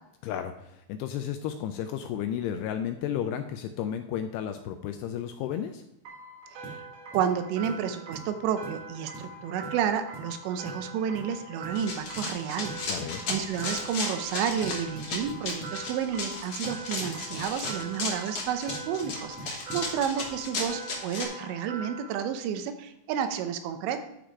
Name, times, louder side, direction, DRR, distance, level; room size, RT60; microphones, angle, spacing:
voice 1, 0.2-5.8 12.9-13.2, left 9 dB, 85° left, 7 dB, 2.5 m, -33 dB
sound 1, 6.1-22.2, right 3 dB, 65° right, 3.0 m, -43 dB
voice 2, 6.5-6.8 7.1-12.7 13.3-24.1, right 8 dB, 80° right, 8 dB, 3.0 m, -31 dB
sound 2, 6.6-6.8 7.1-7.3 7.6-7.8 8.1-8.3 8.6-8.8 9.1-9.3 9.6-9.8 10.1-10.3 10.6-10.9 11.1-11.3 11.6-11.8 12.1-12.3 12.6-13.8 14.6-15.8 16.6-17.8 18.7-19.9, right 4 dB, 5° right, 0.5 m, -43 dB
Run, 11.7-21.2, left 3 dB, 65° left, 1.4 m, -35 dB
10.5 x 5.0 x 4.6 m, 0.85 s
omnidirectional pair, 5.2 m